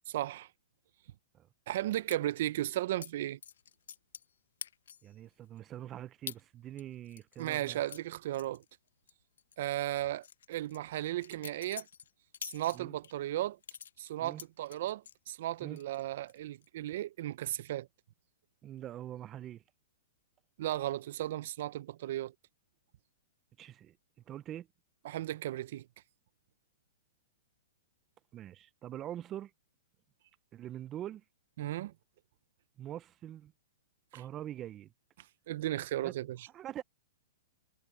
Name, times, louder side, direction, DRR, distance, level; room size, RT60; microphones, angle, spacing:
voice 1, 0.1-0.5 1.7-3.4 7.4-8.6 9.6-11.9 12.5-13.6 14.0-17.9 20.6-22.3 25.0-25.8 31.6-31.9 34.1-34.2 35.5-36.5, right 14 dB, 60° right, 0.7 m, -35 dB
sound 1, 2.1-2.2 3.0-3.1 3.4-4.3 4.6-5.1 5.6-5.7 6.3-6.4 6.8-9.1 9.4-9.6 10.0-13.1 13.6-15.2 15.6-16.0 16.3-16.7, left 8 dB, 75° left, 1.0 m, -47 dB
voice 2, 5.0-7.8 12.7-12.9 14.2-14.4 15.6-15.8 18.6-19.6 23.6-23.9 24.3-24.7 28.3-29.5 30.5-31.2 32.8-33.5 34.1-34.9 36.0-36.1 36.5-36.8, right 12 dB, 25° right, 0.6 m, -44 dB
hypercardioid pair, 135°, 0 cm